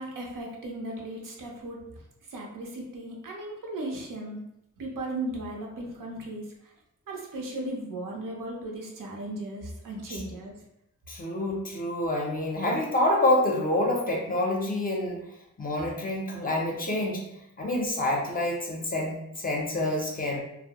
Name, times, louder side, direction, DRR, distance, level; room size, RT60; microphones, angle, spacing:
voice 1, 0.0-1.8 2.3-4.4 4.8-6.7 7.1-10.5, right 1 dB, 75° right, -1 dB, 0.7 m, -36 dB
voice 2, 11.1-15.3 15.6-17.3 17.6-20.4, left 1 dB, 25° left, -1 dB, 0.5 m, -27 dB
2.6 x 2.0 x 2.8 m, 0.82 s
wide cardioid pair, 140°, 32 cm